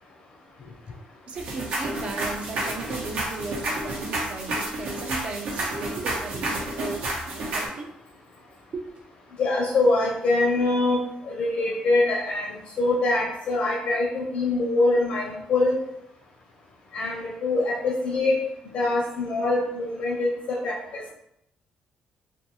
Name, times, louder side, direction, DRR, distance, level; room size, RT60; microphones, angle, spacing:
voice 1, 1.3-8.0 8.7-9.0, right 3 dB, 50° right, 3 dB, 0.4 m, -36 dB
sound 1, 1.3-7.7, right 1 dB, 85° right, 0.8 m, -30 dB
voice 2, 9.4-11.0 11.3-15.8 16.9-18.4 18.7-21.0, left 2 dB, 60° left, -1 dB, 0.5 m, -24 dB
2.5 x 2.3 x 2.9 m, 0.81 s
cardioid pair, 125°, 3 cm